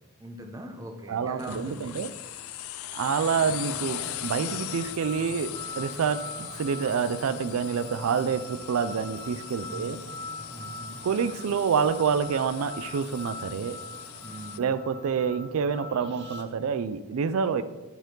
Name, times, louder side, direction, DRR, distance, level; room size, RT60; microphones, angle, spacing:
voice 1, 0.2-2.0 9.6-10.0 10.5-10.9 14.2-14.7, right 1 dB, 15° right, 2 dB, 0.8 m, -41 dB
voice 2, 1.1-2.1 2.9-10.0 11.0-13.8 14.6-17.6, right 6 dB, 85° right, 12 dB, 0.4 m, -27 dB
sound 1, 1.4-14.6, left 12 dB, 85° left, 0.4 m, -40 dB
sound 2, 3.3-16.4, left 1 dB, 55° right, 0.9 m, -43 dB
10.5 x 4.5 x 3.8 m, 1.2 s
head